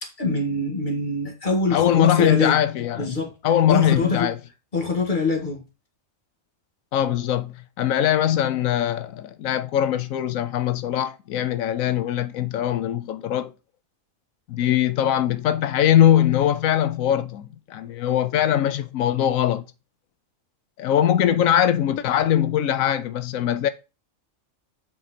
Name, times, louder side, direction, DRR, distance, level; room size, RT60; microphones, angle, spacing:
voice 1, 0.0-2.6 3.0-3.3 3.7-4.3 4.7-5.6, left 3 dB, 35° left, 2.0 m, -24 dB
voice 2, 1.7-3.2 3.4-4.4 6.9-13.5 14.5-19.7 20.8-23.7, left 10 dB, 90° left, 1.1 m, -21 dB
7.7 x 4.7 x 4.2 m
omnidirectional pair, 1.4 m